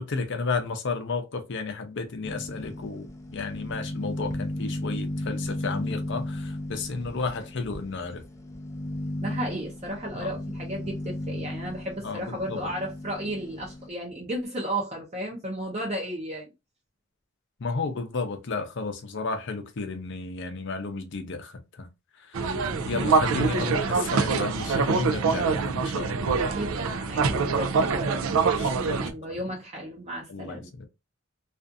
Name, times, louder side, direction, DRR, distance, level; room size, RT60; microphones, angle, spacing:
voice 1, 0.0-8.2 10.1-10.4 12.0-12.6 17.6-21.9 22.2-22.5 22.8-26.4 28.6-29.4 30.3-30.9, left 4 dB, 60° left, 0.6 m, -33 dB
sound 1, 2.2-13.9, left 1 dB, 15° left, 0.4 m, -35 dB
voice 2, 9.2-16.5 26.4-28.2 28.9-30.7, right 1 dB, 30° right, 0.6 m, -34 dB
sound 2, 22.3-29.1, right 4 dB, 90° right, 0.4 m, -25 dB
2.5 x 2.4 x 2.5 m
head